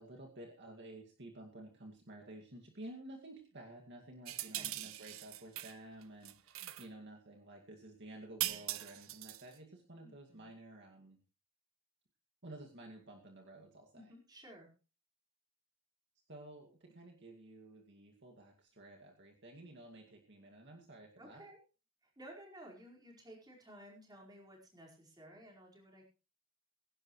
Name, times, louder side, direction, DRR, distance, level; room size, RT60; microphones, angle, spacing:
voice 1, 0.0-11.2 12.4-14.1 16.3-21.4, right 1 dB, 55° right, 1 dB, 2.2 m, -52 dB
sound 1, 4.2-5.8 6.0-6.9 8.4-9.5, right 15 dB, 70° right, 0.8 m, -41 dB
voice 2, 4.5-4.9 10.0-10.5 13.9-14.7 21.2-21.6 22.0-26.1, right 1 dB, 20° right, -1 dB, 4.9 m, -55 dB
22.5 x 11.0 x 3.2 m, 0.33 s
head